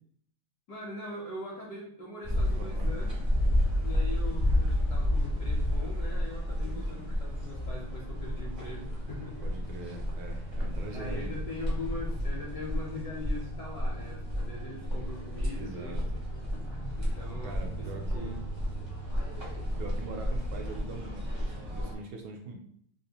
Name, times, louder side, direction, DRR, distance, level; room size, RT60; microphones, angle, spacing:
voice 1, 0.7-3.2 3.8-9.5 10.9-16.0 16.9-18.4, left 2 dB, 70° left, -4 dB, 0.9 m, -41 dB
sound 1, 2.2-21.9, equal, 30° right, 0.5 m, -31 dB
voice 2, 2.6-2.9 6.6-7.1 9.4-11.3 15.5-16.2 17.4-18.4 19.5-22.5, right 2 dB, 75° right, 3 dB, 1.3 m, -43 dB
3.5 x 2.4 x 2.8 m, 0.64 s
omnidirectional pair, 2.4 m